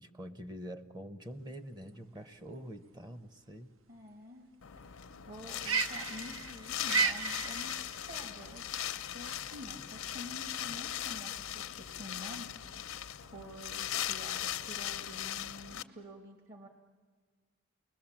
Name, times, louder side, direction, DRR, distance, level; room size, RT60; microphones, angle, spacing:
voice 1, 0.0-3.7 9.8-9.9, equal, 20° right, 10 dB, 0.8 m, -45 dB
sound 1, 1.3-15.8, right 5 dB, 70° right, 0.8 m, -38 dB
voice 2, 3.9-4.5 4.8-8.6 9.1-16.7, left 1 dB, 45° right, 3 dB, 1.7 m, -49 dB
Wind, 4.6-15.8, left 11 dB, 80° left, 0.7 m, -39 dB
30.0 x 20.5 x 7.3 m, 1.5 s
head